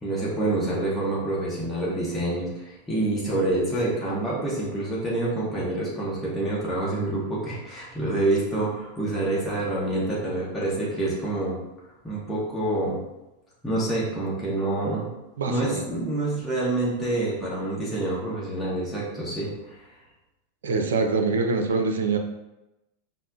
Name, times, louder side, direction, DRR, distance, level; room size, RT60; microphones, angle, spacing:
voice 1, 0.0-11.6 12.0-13.0 13.6-15.1 15.5-19.8, right 2 dB, 5° left, -8 dB, 0.9 m, -27 dB
voice 2, 15.4-15.8 20.6-22.2, right 4 dB, 65° right, 5 dB, 0.4 m, -24 dB
5.3 x 2.0 x 2.6 m, 0.95 s
figure-of-eight pair, 90°, 0 cm